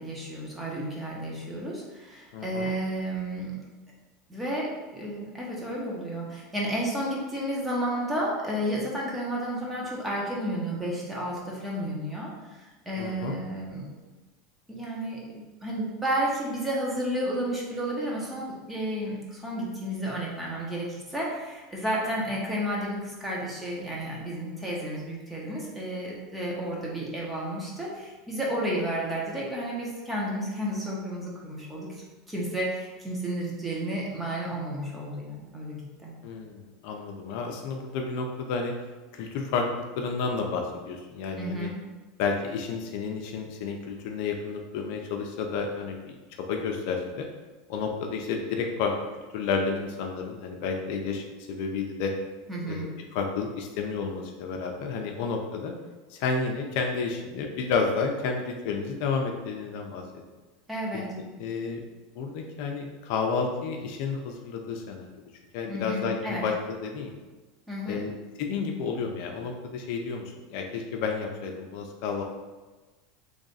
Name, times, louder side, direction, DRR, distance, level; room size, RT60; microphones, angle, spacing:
voice 1, 0.0-3.5 4.3-4.7 4.9-13.9 14.7-36.1 41.4-41.8 52.5-52.9 60.7-61.1 65.7-66.4 67.7-68.1, right 1 dB, 10° right, -4 dB, 1.0 m, -32 dB
voice 2, 2.3-2.7 13.0-13.4 36.2-38.7 39.1-41.7 42.2-46.2 46.5-47.3 47.7-48.9 49.3-52.1 52.6-55.7 56.1-60.0 61.4-61.8 62.2-65.1 65.5-67.1 67.9-68.1 68.4-70.2 70.5-72.2, left 5 dB, 65° left, 2 dB, 0.5 m, -31 dB
3.2 x 2.5 x 3.9 m, 1.2 s
supercardioid pair, 130°, 0 cm